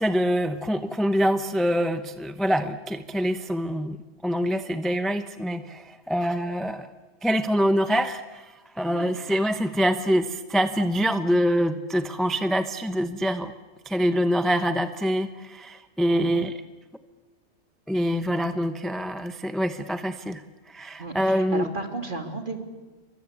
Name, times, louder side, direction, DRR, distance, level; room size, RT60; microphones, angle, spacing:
voice 1, 0.0-4.0 4.2-6.9 7.2-8.5 8.8-13.5 13.9-16.5 17.9-20.4 20.7-21.7, equal, ahead, 9 dB, 0.8 m, -25 dB
voice 2, 21.0-22.7, right 2 dB, 40° right, 5 dB, 2.9 m, -34 dB
28.5 x 24.5 x 8.3 m, 1.2 s
omnidirectional pair, 1.3 m